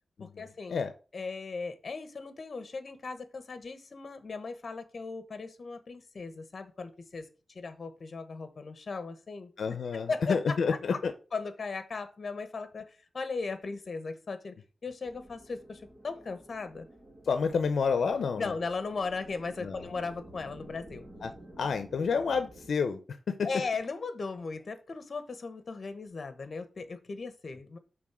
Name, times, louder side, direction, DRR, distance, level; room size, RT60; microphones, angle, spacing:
voice 1, 0.2-0.8 1.1-9.5 9.9-11.0 11.3-14.5 14.8-16.9 18.4-21.1 23.4-27.8, left 4 dB, 50° left, 10 dB, 1.1 m, -37 dB
voice 2, 9.6-11.1 17.3-18.6 19.6-19.9 21.2-21.3 21.6-23.5, left 5 dB, 80° left, 9 dB, 0.6 m, -29 dB
sound 1, 15.0-22.7, right 1 dB, 25° right, 1.5 m, -51 dB
6.1 x 3.8 x 6.1 m, 0.34 s
wide cardioid pair, 120°, 0 cm